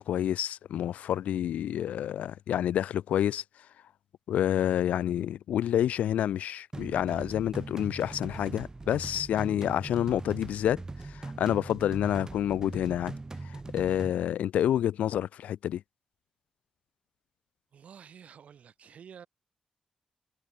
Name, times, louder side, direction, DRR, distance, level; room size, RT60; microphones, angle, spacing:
voice 1, 0.0-3.4 4.3-10.8 11.1-13.2 13.4-15.8, left 11 dB, 85° left, 0.7 m, -28 dB
sound 1, 6.7-14.1, right 3 dB, 30° right, 1.0 m, -40 dB
voice 2, 17.7-19.3, right 7 dB, 70° right, 7.4 m, -50 dB
supercardioid pair, 50°, 2 cm